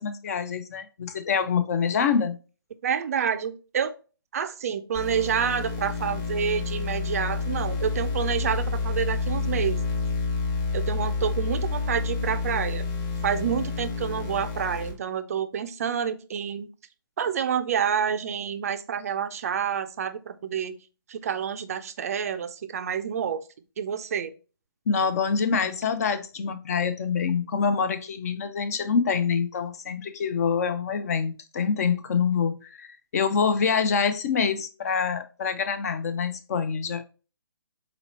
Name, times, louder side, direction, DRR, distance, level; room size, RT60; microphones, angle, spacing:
voice 1, 0.0-2.4 24.9-37.0, left 6 dB, 40° left, 0.5 m, -26 dB
voice 2, 2.8-3.9 4.3-9.8 10.7-12.8 13.2-16.7 17.2-20.8 21.1-23.4 23.8-24.3, right 7 dB, 40° right, 0.4 m, -28 dB
sound 1, 4.9-14.9, left 4 dB, 20° left, 1.0 m, -29 dB
4.1 x 2.9 x 4.2 m
hypercardioid pair, 150°, 12 cm